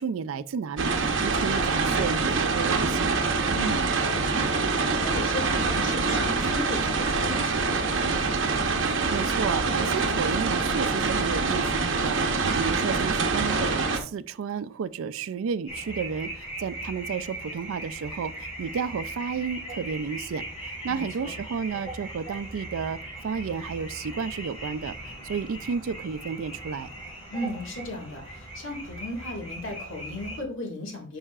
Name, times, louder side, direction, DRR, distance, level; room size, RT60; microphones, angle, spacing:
voice 1, 0.0-3.1 8.8-25.0 25.3-26.9, right 6 dB, 80° right, 0.4 m, -32 dB
sound 1, 0.8-14.0, right 4 dB, 65° right, 0.9 m, -25 dB
voice 2, 3.5-8.2 20.9-21.4 27.3-31.2, left 1 dB, 70° left, 1.9 m, -36 dB
sound 2, 15.7-30.4, right 1 dB, 30° left, 3.6 m, -39 dB
9.9 x 5.6 x 2.4 m
head